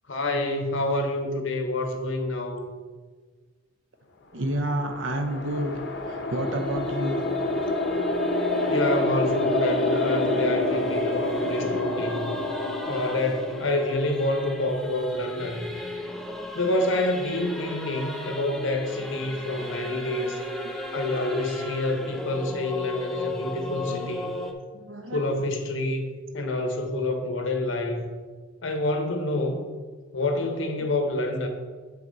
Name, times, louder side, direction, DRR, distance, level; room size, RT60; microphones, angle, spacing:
voice 1, 0.1-2.7 8.7-12.3 12.9-15.7 16.5-20.4 20.9-24.4 25.1-28.1 28.6-29.6 30.1-31.5, left 2 dB, 80° left, 4 dB, 1.0 m, -27 dB
voice 2, 4.3-5.8 6.1-7.2 23.9-24.1 24.7-25.2, right 1 dB, 80° right, 6 dB, 0.8 m, -29 dB
sound 1, 4.6-15.0, left 2 dB, 60° left, 0.8 m, -28 dB
Singing / Musical instrument, 5.1-24.5, left 1 dB, ahead, 0.5 m, -37 dB
7.3 x 5.8 x 4.0 m, 1.5 s
head